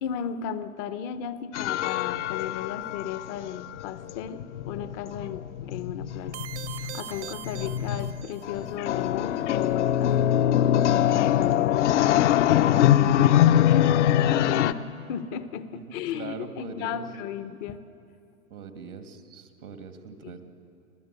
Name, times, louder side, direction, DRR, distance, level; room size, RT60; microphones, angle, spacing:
voice 1, 0.0-6.4 6.7-10.1 10.9-12.4 12.8-14.8 15.1-17.8 20.2-20.4, left 8 dB, 25° left, 13 dB, 0.7 m, -35 dB
sound 1, 1.5-14.7, left 11 dB, 55° left, 0.8 m, -23 dB
sound 2, 6.3-8.7, right 12 dB, 50° right, 1.0 m, -41 dB
voice 2, 15.7-17.0 18.5-20.4, right 6 dB, 85° right, 7 dB, 2.5 m, -41 dB
26.0 x 15.5 x 8.2 m, 2.5 s
hypercardioid pair, 140°, 43 cm